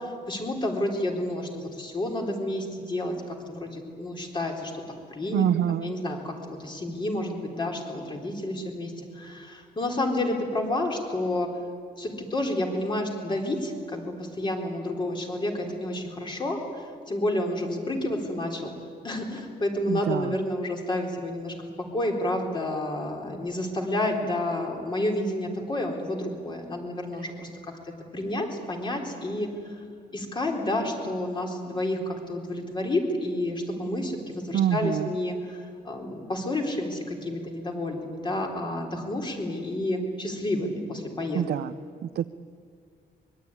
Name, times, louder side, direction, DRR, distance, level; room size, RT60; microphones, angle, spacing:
voice 1, 0.0-4.8 5.1-11.5 12.0-18.7 19.0-21.5 21.9-29.8 30.1-41.4, left 1 dB, 25° left, 2 dB, 3.9 m, -30 dB
voice 2, 5.3-6.0 19.9-20.3 34.5-35.1 41.3-41.7 42.0-42.3, right 10 dB, 70° right, 9 dB, 0.6 m, -26 dB
24.5 x 22.5 x 9.8 m, 2.1 s
wide cardioid pair, 170°, 17 cm